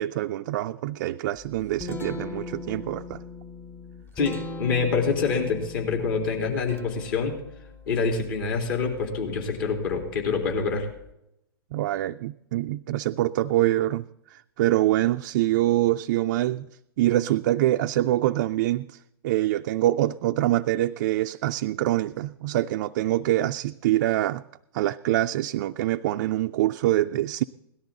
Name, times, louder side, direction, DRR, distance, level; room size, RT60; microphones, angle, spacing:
voice 1, 0.0-3.2 11.7-14.1 14.3-16.7 17.0-19.0 19.2-24.4 24.7-27.4, right 15 dB, 50° right, 0.4 m, -25 dB
Guitar, 1.4-11.1, left 2 dB, 15° left, 0.8 m, -41 dB
voice 2, 4.2-7.4 7.9-10.9, left 5 dB, 60° left, 3.7 m, -26 dB
17.5 x 12.5 x 3.9 m
hypercardioid pair, 115°, 13 cm